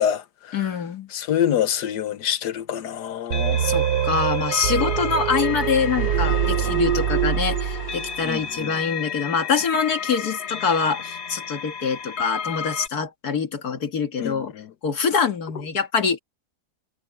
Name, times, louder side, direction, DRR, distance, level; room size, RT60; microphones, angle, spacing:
voice 1, 0.0-0.7 1.1-3.6 8.2-8.7 14.2-14.7, left 9 dB, 85° left, 1.5 m, -26 dB
voice 2, 0.5-1.1 3.6-14.5 14.8-16.2, left 5 dB, 70° left, 2.2 m, -25 dB
sound 1, 3.3-12.9, left 7 dB, 50° left, 1.0 m, -32 dB
sound 2, 3.3-8.3, right 9 dB, 75° right, 1.4 m, -24 dB
omnidirectional pair, 1.7 m